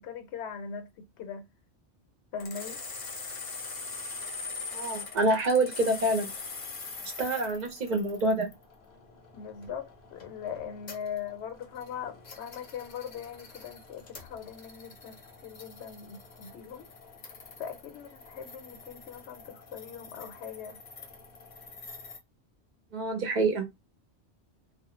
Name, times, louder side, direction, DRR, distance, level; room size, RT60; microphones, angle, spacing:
voice 1, 0.0-1.4 2.3-2.8 9.3-16.9 17.6-20.8, left 7 dB, 80° left, 0.9 m, -40 dB
sound 1, 2.4-22.2, left 4 dB, 45° left, 0.7 m, -44 dB
voice 2, 4.7-6.3 7.2-8.5 22.9-23.6, right 2 dB, 50° right, 0.6 m, -26 dB
2.2 x 2.0 x 2.9 m
omnidirectional pair, 1.1 m